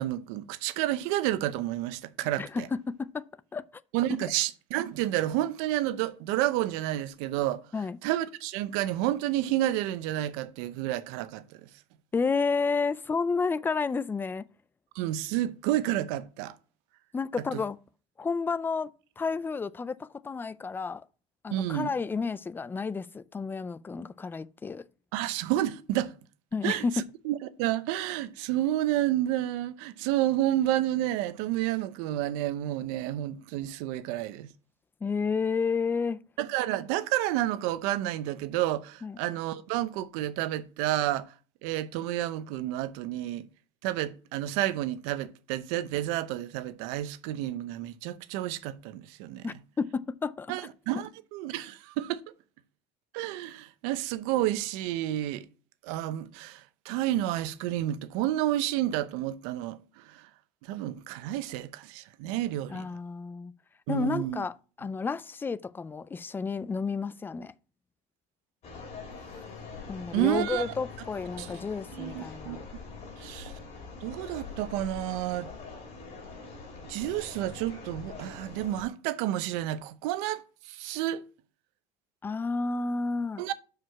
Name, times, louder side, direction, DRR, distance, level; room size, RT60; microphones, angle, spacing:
voice 1, 0.0-2.7 3.9-7.6 8.0-11.7 14.9-16.5 21.5-21.9 25.1-26.1 26.6-34.5 36.4-41.3 41.6-43.5 43.8-49.5 50.5-52.2 53.1-55.5 55.8-60.3 60.6-62.9 63.9-64.4 70.1-70.7 71.4-71.5 71.9-72.6 73.2-73.5 74.0-75.5 76.9-80.4 80.7-81.2 83.4-83.5, right 14 dB, 80° right, 0.7 m, -30 dB
voice 2, 2.4-3.3 3.5-3.8 4.2-4.3 7.7-8.0 12.1-14.4 17.1-17.8 18.2-18.9 19.2-21.0 21.4-24.8 26.5-27.0 35.0-36.2 39.0-39.2 49.4-50.5 62.7-63.5 63.9-67.5 69.9-72.6 82.2-83.4, left 4 dB, 15° left, 0.4 m, -31 dB
sound 1, 68.6-78.8, left 4 dB, 45° left, 3.1 m, -43 dB
6.3 x 4.9 x 5.8 m
cardioid pair, 130°, 16 cm